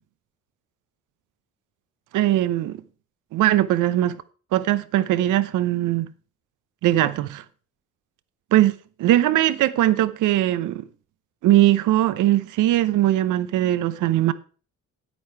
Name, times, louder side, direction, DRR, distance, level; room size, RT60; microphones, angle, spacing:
voice 1, 2.1-2.8 3.3-4.2 4.5-6.1 6.8-7.4 8.5-8.7 9.0-10.9 11.4-14.3, right 14 dB, 85° right, 0.8 m, -20 dB
9.1 x 8.6 x 4.6 m
cardioid pair, 90°, 30 cm